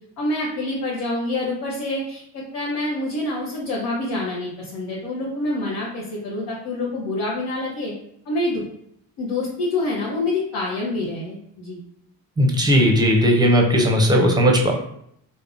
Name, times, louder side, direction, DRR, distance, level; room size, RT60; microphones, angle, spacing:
voice 1, 0.2-7.9 8.2-8.6 9.2-11.8, left 2 dB, 70° left, -5 dB, 0.9 m, -26 dB
voice 2, 12.4-14.7, equal, 10° right, 1 dB, 0.6 m, -17 dB
3.5 x 2.2 x 2.5 m, 0.71 s
supercardioid pair, 70°, 43 cm